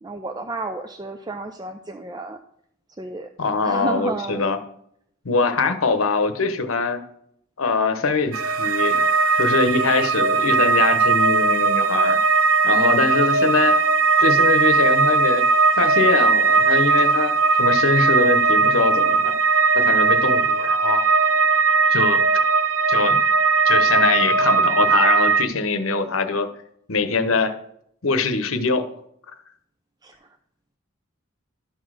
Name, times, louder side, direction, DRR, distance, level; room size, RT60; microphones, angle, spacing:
voice 1, 0.0-2.4 3.0-3.3 3.6-4.4 5.4-5.5 12.7-13.2 30.0-30.2, right 2 dB, 20° right, 5 dB, 0.5 m, -32 dB
voice 2, 3.4-4.6 5.2-7.1 7.6-9.0 9.4-12.2 12.6-13.8 14.2-15.5 15.8-19.3 19.7-21.0 21.9-22.2 22.9-23.2 23.6-26.5 26.9-27.5 28.0-28.9, left 4 dB, 80° left, 9 dB, 0.9 m, -22 dB
sound 1, 8.3-25.4, right 4 dB, 90° right, 0.5 m, -18 dB
11.5 x 4.0 x 6.3 m, 0.71 s
head